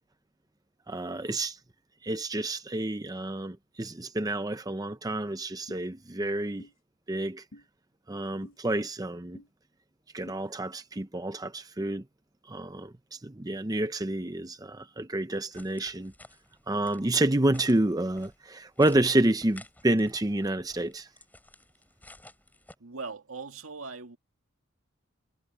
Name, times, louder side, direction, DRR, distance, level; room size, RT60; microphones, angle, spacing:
voice 1, 0.9-1.6 2.0-6.7 7.1-7.4 8.1-9.4 10.1-12.1 12.5-16.1 16.7-21.1, right 1 dB, 20° right, 0.7 m, -29 dB
sound 1, 5.7-5.8 6.6-6.7 7.5-7.7 8.4-8.6 9.3-9.5 10.3-10.4, left 1 dB, 65° left, 1.0 m, -49 dB
sound 2, 15.5-22.8, left 2 dB, 10° left, 5.5 m, -54 dB
voice 2, 22.8-24.2, right 4 dB, 85° right, 2.2 m, -40 dB
head